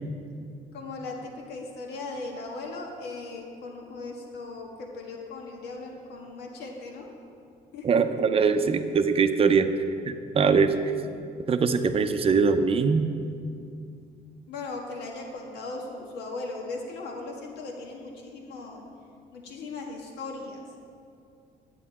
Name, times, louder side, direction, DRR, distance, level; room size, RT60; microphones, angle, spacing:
voice 1, 0.7-7.1 7.7-8.2 14.5-18.8 19.3-20.6, left 3 dB, 80° left, 0 dB, 1.5 m, -38 dB
voice 2, 7.8-9.7 10.1-10.8 11.5-13.0, right 5 dB, 35° right, 9 dB, 0.6 m, -22 dB
9.9 x 8.2 x 4.2 m, 2.4 s
cardioid pair, 110°, 17 cm